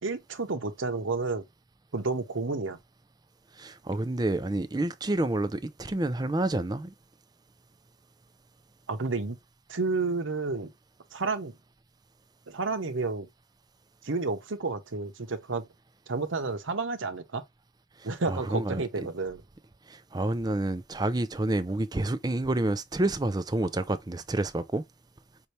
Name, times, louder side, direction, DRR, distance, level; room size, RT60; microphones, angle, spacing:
voice 1, 0.0-1.5 1.9-2.8 8.9-9.4 9.7-10.7 11.1-11.6 12.5-13.3 14.0-15.6 16.1-17.4 18.0-19.4, right 3 dB, 80° right, 0.9 m, -30 dB
voice 2, 3.6-6.9 18.3-18.8 19.9-24.8, right 2 dB, 20° right, 0.4 m, -29 dB
5.5 x 2.8 x 3.2 m
head